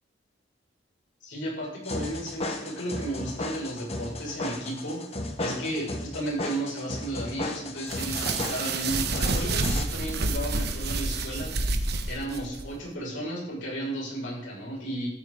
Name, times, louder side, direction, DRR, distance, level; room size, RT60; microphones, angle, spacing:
voice 1, 1.2-5.1 5.4-11.5 12.1-15.1, right 1 dB, 80° left, -4 dB, 6.6 m, -34 dB
sound 1, 1.8-9.8, left 2 dB, 35° left, 1.4 m, -35 dB
sound 2, 7.9-12.7, right 3 dB, 60° right, 1.2 m, -28 dB
13.5 x 9.1 x 4.9 m, 0.72 s
head